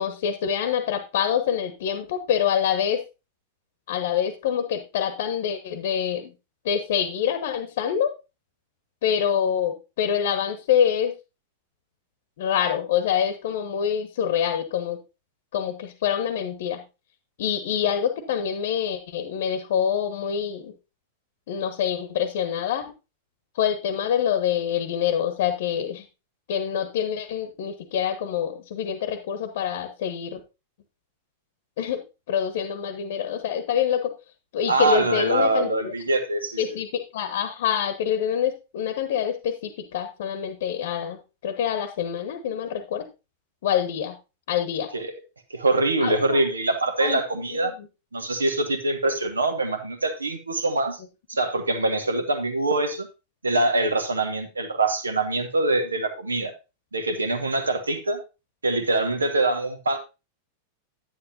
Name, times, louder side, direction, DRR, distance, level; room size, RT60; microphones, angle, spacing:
voice 1, 0.0-3.0 3.9-6.3 6.6-8.1 9.0-11.1 12.4-15.0 15.5-16.8 17.4-20.7 21.5-22.9 23.5-26.0 26.5-30.4 31.8-32.0 32.3-34.1 34.5-35.9 36.6-43.1 43.6-44.1 44.5-44.9 46.0-46.4 47.0-47.2 47.6-47.9, left 9 dB, 55° left, 9 dB, 1.0 m, -26 dB
voice 2, 34.7-36.6 44.9-45.1 45.5-47.7 48.1-51.0 51.3-53.1 53.4-56.5 56.9-58.2 58.6-60.0, right 2 dB, 75° right, 9 dB, 1.2 m, -24 dB
10.0 x 9.3 x 2.7 m, 0.28 s
figure-of-eight pair, 90°, 0 cm